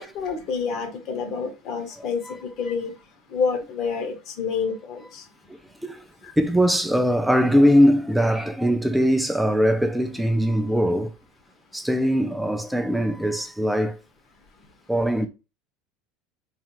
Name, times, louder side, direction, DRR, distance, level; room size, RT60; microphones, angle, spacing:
voice 1, 0.0-2.9 3.3-5.2 6.2-6.3, left 5 dB, 50° left, 0.9 m, -28 dB
voice 2, 6.4-11.1 11.7-14.0 14.9-15.3, equal, 5° right, 0.4 m, -21 dB
3.2 x 2.4 x 2.9 m
supercardioid pair, 125°, 0 cm